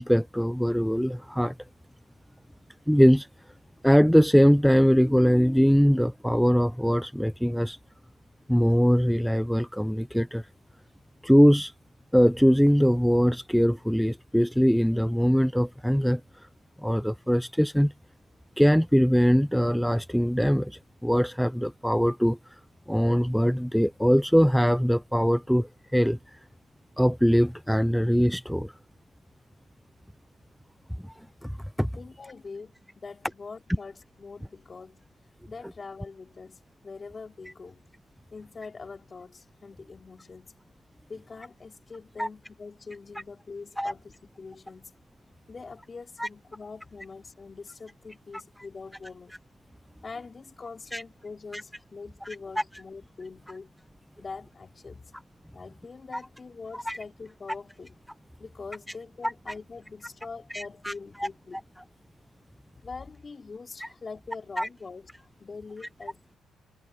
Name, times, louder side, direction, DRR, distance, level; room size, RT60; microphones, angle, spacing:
voice 1, 0.0-1.5 2.9-3.3 3.8-7.8 8.5-10.4 11.2-11.7 12.1-16.2 16.8-17.9 18.6-22.4 22.9-26.4 27.0-28.7 31.4-31.9 42.2-42.3 43.8-43.9 46.2-46.3 50.9-51.0 51.5-51.6 56.9-57.0 60.5-60.9 61.2-61.3 64.6-64.7, equal, ahead, 0.4 m, -22 dB
voice 2, 31.9-35.1 35.5-37.8 38.3-40.6 41.1-45.0 45.5-49.3 50.0-53.7 54.2-55.0 55.5-57.9 58.4-61.6 62.8-66.2, left 4 dB, 35° left, 3.2 m, -43 dB
cardioid pair, 90°, 0 cm